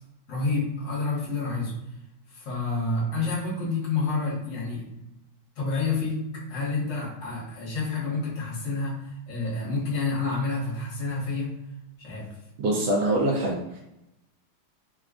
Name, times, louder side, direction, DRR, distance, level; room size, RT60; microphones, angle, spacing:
voice 1, 0.3-1.8 2.3-5.0 5.6-11.6 12.0-12.4, left 3 dB, 50° left, -6 dB, 1.2 m, -29 dB
voice 2, 12.6-13.8, right 1 dB, 75° right, -3 dB, 1.0 m, -24 dB
3.4 x 2.3 x 2.4 m, 0.90 s
omnidirectional pair, 2.2 m